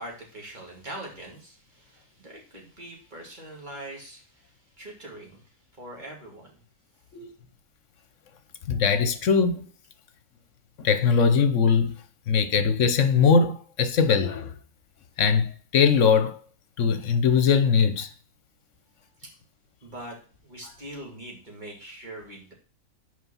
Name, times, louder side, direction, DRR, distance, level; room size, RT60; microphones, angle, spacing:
voice 1, 0.0-6.6 19.2-19.3 19.8-20.2 20.4-22.5, right 1 dB, 35° right, 2.7 m, -42 dB
voice 2, 8.7-9.6 10.8-12.0 12.3-14.5 15.2-16.4 16.8-18.1, left 6 dB, 70° left, 1.2 m, -21 dB
6.5 x 5.0 x 5.5 m
omnidirectional pair, 1.4 m